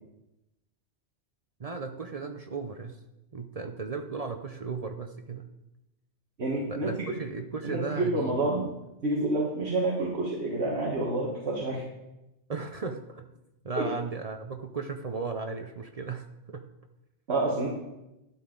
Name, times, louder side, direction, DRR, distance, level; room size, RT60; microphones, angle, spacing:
voice 1, 1.6-3.0 3.3-5.5 6.7-8.5 12.5-13.3 13.6-16.7, right 4 dB, 40° right, 5 dB, 0.6 m, -36 dB
voice 2, 6.4-6.9 7.6-8.7 9.0-11.8 13.8-13.9 17.3-17.7, right 2 dB, 65° right, -2 dB, 1.7 m, -28 dB
12.0 x 9.0 x 3.8 m, 0.94 s
omnidirectional pair, 1.2 m